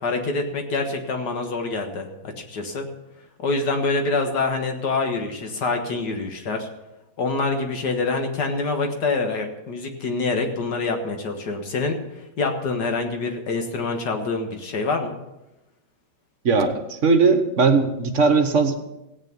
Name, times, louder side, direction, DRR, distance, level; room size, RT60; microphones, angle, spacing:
voice 1, 0.0-2.9 3.4-6.7 7.2-12.0 12.4-15.2, left 3 dB, 65° left, 4 dB, 2.1 m, -26 dB
voice 2, 16.4-18.8, right 4 dB, 45° right, 7 dB, 1.3 m, -19 dB
16.0 x 8.8 x 5.4 m, 0.95 s
omnidirectional pair, 2.0 m